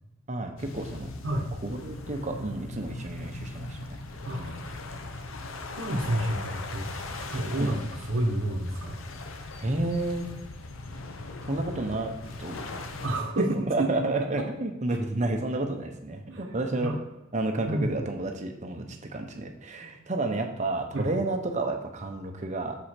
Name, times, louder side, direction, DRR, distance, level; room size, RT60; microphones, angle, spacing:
voice 1, 0.3-1.1 1.6-4.0 4.3-4.6 7.6-7.9 9.6-10.3 11.4-12.1 12.4-12.6 13.4-17.0 17.3-22.8, right 2 dB, 35° right, 4 dB, 0.8 m, -31 dB
sound 1, 0.6-13.1, left 2 dB, 80° left, 0.7 m, -39 dB
voice 2, 4.2-4.6 5.7-6.9 7.1-7.8 8.0-9.0 13.0-13.5 13.8-13.9 14.4-14.5 14.9-15.0 16.3-16.6 16.8-16.9 17.7-17.9 20.9-21.1, right 1 dB, 70° right, -1 dB, 1.0 m, -29 dB
7.0 x 4.9 x 4.4 m, 1.0 s
head